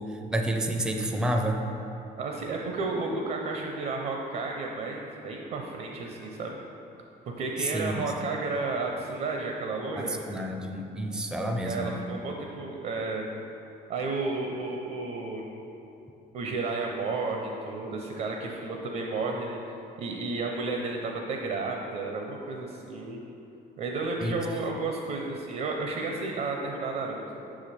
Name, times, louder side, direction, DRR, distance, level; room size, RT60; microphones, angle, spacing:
voice 1, 0.3-1.6 7.6-8.1 10.0-12.0 24.2-24.3, right 1 dB, 5° right, 3 dB, 0.4 m, -29 dB
voice 2, 2.2-6.6 7.3-10.2 11.6-13.3 13.9-15.4 16.3-19.6 20.0-23.2 23.8-27.2, right 3 dB, 60° right, 1 dB, 0.6 m, -32 dB
5.8 x 4.9 x 4.2 m, 2.9 s
cardioid pair, 110°, 17 cm